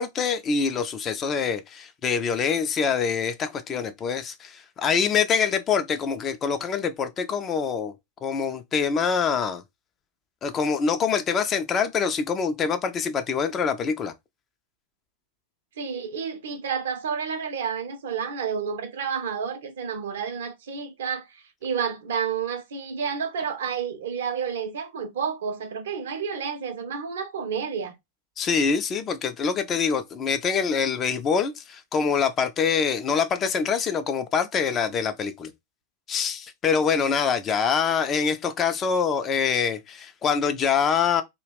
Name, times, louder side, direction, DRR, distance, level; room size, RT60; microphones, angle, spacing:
voice 1, 0.0-7.9 8.2-9.6 10.4-14.1 28.4-35.5 36.1-41.2, left 6 dB, 25° left, 0.4 m, -25 dB
voice 2, 15.8-27.9, right 6 dB, 60° right, 0.5 m, -30 dB
2.3 x 2.0 x 3.3 m
figure-of-eight pair, 90°, 0 cm